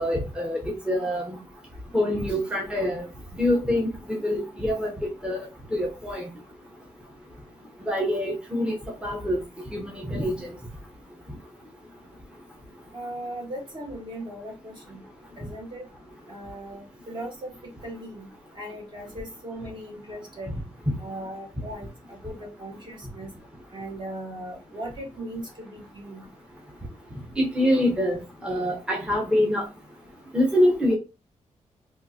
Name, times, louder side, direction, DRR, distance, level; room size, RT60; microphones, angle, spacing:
voice 1, 0.0-1.4 1.9-3.0 3.3-6.3 7.9-8.8 9.0-9.4 9.7-10.5 27.4-29.6 30.3-30.9, left 1 dB, 10° right, 0.7 m, -25 dB
voice 2, 12.9-15.0 15.4-15.9 16.3-17.5 17.8-18.3 18.5-20.5 21.0-23.3 23.7-26.3, right 1 dB, 40° right, 1.3 m, -38 dB
3.6 x 2.4 x 2.7 m
wide cardioid pair, 115°, 12 cm